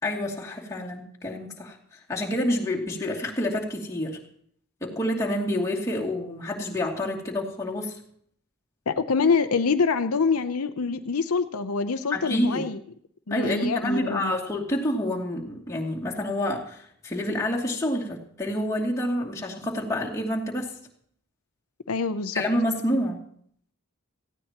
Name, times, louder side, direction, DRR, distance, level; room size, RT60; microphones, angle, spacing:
voice 1, 0.0-1.8 2.1-4.2 4.8-7.9 12.1-12.6 13.3-20.7 22.3-23.2, left 1 dB, 15° left, -4 dB, 2.5 m, -28 dB
voice 2, 8.9-12.8 13.3-14.4 21.9-22.4, left 5 dB, 80° left, 10 dB, 0.7 m, -25 dB
18.5 x 15.0 x 2.9 m, 0.64 s
head